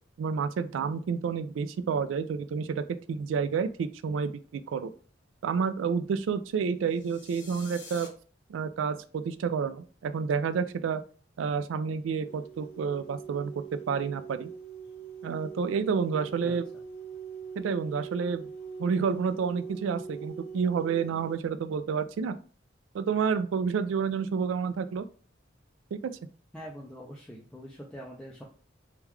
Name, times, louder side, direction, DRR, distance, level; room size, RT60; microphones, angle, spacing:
voice 1, 0.2-4.9 5.4-8.1 8.5-11.0 11.4-14.5 15.2-16.7 17.6-18.5 18.8-22.4 22.9-25.1 25.9-26.2, right 6 dB, 80° right, 13 dB, 0.3 m, -29 dB
sound 1, 6.9-8.1, left 4 dB, 60° left, 1.0 m, -47 dB
sound 2, 12.3-21.3, right 7 dB, 85° left, 1.0 m, -42 dB
voice 2, 26.5-28.4, equal, 5° left, -4 dB, 0.4 m, -44 dB
3.6 x 2.3 x 3.0 m, 0.41 s
head